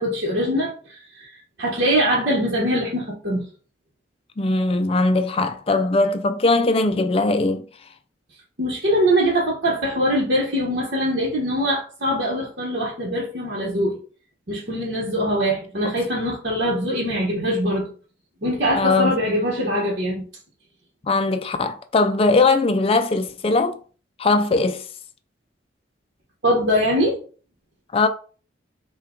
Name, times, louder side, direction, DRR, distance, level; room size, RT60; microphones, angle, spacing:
voice 1, 0.0-1.3 1.6-3.5 8.6-14.0 14.5-17.9 18.4-20.2 26.4-27.2, equal, 55° right, 1.2 m, -22 dB
voice 2, 4.4-7.6 18.8-19.2 21.0-23.8 24.2-24.9 27.9-28.1, left 3 dB, 30° left, 0.4 m, -20 dB
5.5 x 2.3 x 3.7 m
head